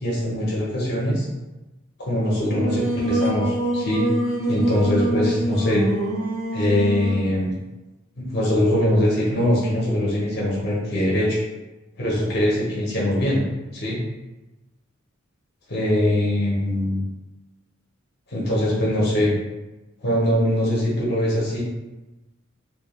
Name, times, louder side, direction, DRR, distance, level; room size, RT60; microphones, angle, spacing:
voice 1, 0.0-1.3 2.0-4.1 4.5-5.8 6.5-7.6 8.2-11.4 12.0-13.4 13.7-14.0 15.7-17.0 18.3-19.3 20.0-21.6, left 1 dB, 50° left, -5 dB, 0.6 m, -22 dB
Singing, 2.4-7.3, right 1 dB, 80° right, 0.5 m, -25 dB
2.1 x 2.1 x 2.9 m, 1.1 s
head